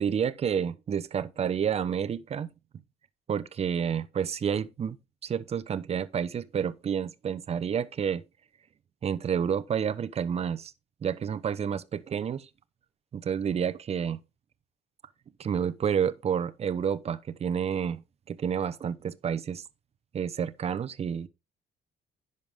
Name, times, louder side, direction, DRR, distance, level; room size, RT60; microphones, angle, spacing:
voice 1, 0.0-2.5 3.3-5.0 5.2-8.2 9.0-10.7 11.0-12.5 13.1-14.2 15.4-18.0 18.3-19.6 20.1-21.3, right 8 dB, 40° right, 0.9 m, -29 dB
10.5 x 6.7 x 3.7 m
cardioid pair, 110°, 17 cm